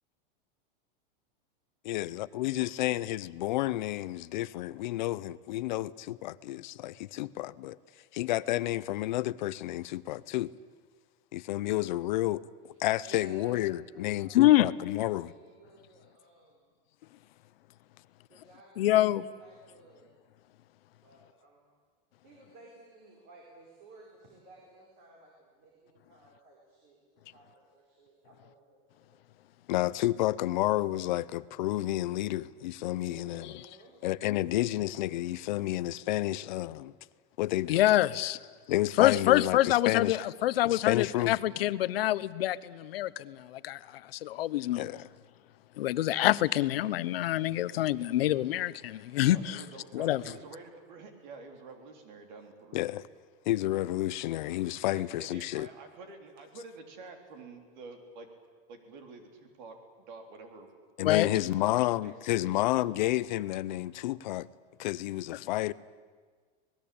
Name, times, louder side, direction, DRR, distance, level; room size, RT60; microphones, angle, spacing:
voice 1, 1.8-7.8 8.1-10.5 11.3-12.4 12.8-15.3 29.7-33.6 34.0-36.9 37.4-37.8 38.7-40.2 40.6-41.4 44.8-45.0 52.7-53.0 53.5-55.7 61.0-64.5 64.8-65.7, left 16 dB, 50° left, 0.7 m, -30 dB
voice 2, 12.7-14.5 14.9-16.7 18.3-19.1 19.4-20.1 21.0-21.6 22.2-29.2 33.0-34.0 38.6-39.2 43.7-43.8 44.7-45.0, right 2 dB, 30° right, 4.6 m, -56 dB
voice 3, 14.3-14.7 18.8-19.2 37.7-38.4 39.0-43.8 44.1-44.8 45.8-49.6 49.9-50.2 61.0-61.3, left 14 dB, 85° left, 1.0 m, -26 dB
voice 4, 49.2-52.8 54.9-58.3 58.7-60.7 61.2-62.5, right 4 dB, 50° right, 3.9 m, -48 dB
26.5 x 20.0 x 8.7 m
supercardioid pair, 180°, 29 cm